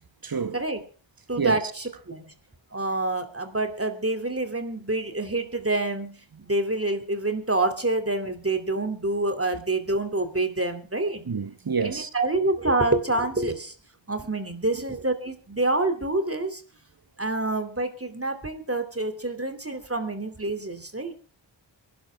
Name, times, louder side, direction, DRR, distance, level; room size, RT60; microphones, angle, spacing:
voice 1, 0.2-0.6 1.4-1.6 11.3-12.1, right 5 dB, 50° right, 1.2 m, -27 dB
voice 2, 1.3-2.3 2.7-6.1 6.4-11.2 11.8-13.7 14.1-16.6 17.2-21.1, right 2 dB, 30° right, 2.7 m, -27 dB
23.5 x 11.5 x 3.5 m
wide cardioid pair, 50°, 46 cm